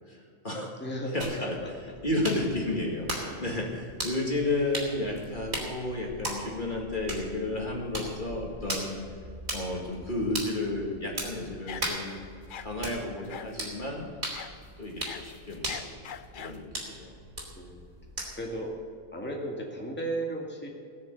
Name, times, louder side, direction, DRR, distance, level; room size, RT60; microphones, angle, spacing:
voice 1, 0.0-0.7 1.1-8.9 9.5-12.2 12.6-14.1 14.8-17.2, left 2 dB, 40° left, -1 dB, 2.1 m, -32 dB
voice 2, 0.8-1.5 3.3-3.4 17.5-17.8 18.4-18.7 19.1-20.7, right 1 dB, 10° left, -1 dB, 2.0 m, -34 dB
sound 1, 1.2-18.6, right 1 dB, 50° right, 3.7 m, -39 dB
sound 2, 11.7-12.1 12.5-12.7 13.3-13.6 14.3-14.5 14.9-16.6, left 8 dB, 55° left, 0.6 m, -42 dB
18.5 x 6.8 x 8.1 m, 2.3 s
omnidirectional pair, 1.4 m